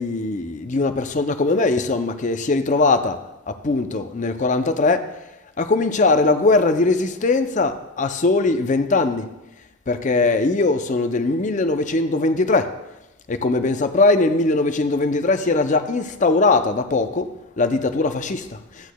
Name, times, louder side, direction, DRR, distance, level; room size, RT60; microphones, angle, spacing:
voice 1, 0.0-3.2 3.6-5.0 5.6-7.7 8.0-9.2 9.9-12.7 13.4-17.3 17.6-18.4, left 3 dB, 40° left, 0.5 m, -20 dB
14.0 x 8.3 x 2.3 m
head